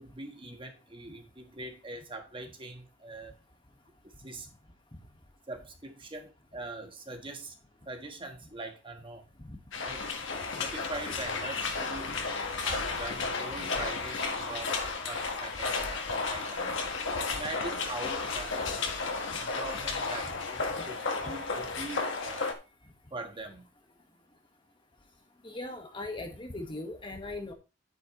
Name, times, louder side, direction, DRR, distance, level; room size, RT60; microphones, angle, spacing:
voice 1, 0.0-3.4 4.0-4.5 5.5-7.6 7.8-9.2 9.8-10.0 10.6-12.2 12.6-16.0 16.3-16.8 17.3-18.8 19.4-22.5 23.1-23.7, right 2 dB, 25° right, 5 dB, 1.4 m, -42 dB
sound 1, 9.7-22.5, left 4 dB, 70° left, 1.6 m, -33 dB
voice 2, 25.4-27.5, left 2 dB, 25° left, 4 dB, 1.6 m, -39 dB
9.7 x 8.9 x 3.1 m, 0.30 s
head